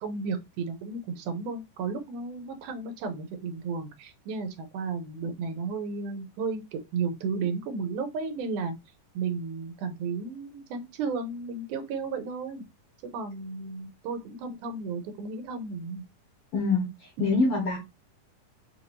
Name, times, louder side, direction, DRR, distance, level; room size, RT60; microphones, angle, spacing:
voice 1, 0.0-8.7 9.1-12.6 13.1-16.0, right 4 dB, 75° right, 2.2 m, -33 dB
voice 2, 16.5-17.8, left 3 dB, 60° left, 1.5 m, -25 dB
5.7 x 2.8 x 2.9 m
omnidirectional pair, 3.7 m